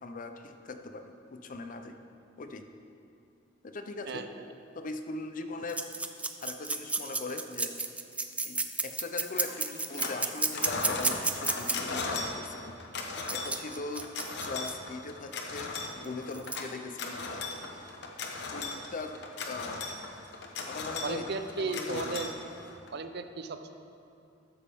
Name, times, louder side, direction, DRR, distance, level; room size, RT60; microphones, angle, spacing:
voice 1, 0.0-2.0 2.4-2.7 3.6-4.3 4.8-5.8 6.4-7.8 8.4-12.7 13.3-14.1 14.4-17.2 18.5-19.8 20.7-21.3 21.6-22.2, left 3 dB, 45° left, 7 dB, 0.6 m, -40 dB
voice 2, 4.1-4.4 21.0-22.3 22.9-23.7, right 4 dB, 55° right, 8 dB, 0.5 m, -35 dB
sound 1, 5.7-11.8 13.3-14.7 16.0-16.1 16.3-16.6, right 3 dB, 5° right, 0.4 m, -32 dB
sound 2, 9.4-10.2 10.5-22.9, left 3 dB, 60° left, 1.0 m, -37 dB
13.0 x 8.4 x 3.5 m, 2.5 s
head